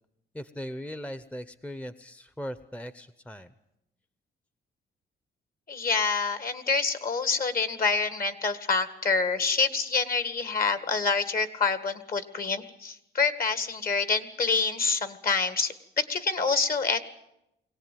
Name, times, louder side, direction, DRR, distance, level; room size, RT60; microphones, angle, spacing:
voice 1, 0.3-3.5, equal, 5° left, 13 dB, 0.8 m, -39 dB
voice 2, 5.7-17.0, left 4 dB, 45° left, 11 dB, 2.0 m, -27 dB
22.5 x 17.5 x 9.3 m, 0.86 s
cardioid pair, 90°, 20 cm